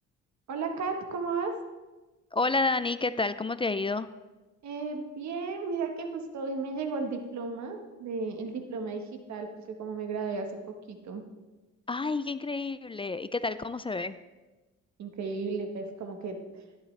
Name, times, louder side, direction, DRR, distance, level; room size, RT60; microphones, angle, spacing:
voice 1, 0.5-1.6 4.6-11.2 15.0-16.6, right 4 dB, 65° right, 5 dB, 1.3 m, -34 dB
voice 2, 2.3-4.1 11.9-14.2, left 3 dB, 20° left, 14 dB, 0.3 m, -29 dB
11.5 x 10.5 x 3.3 m, 1.2 s
cardioid pair, 90°, 30 cm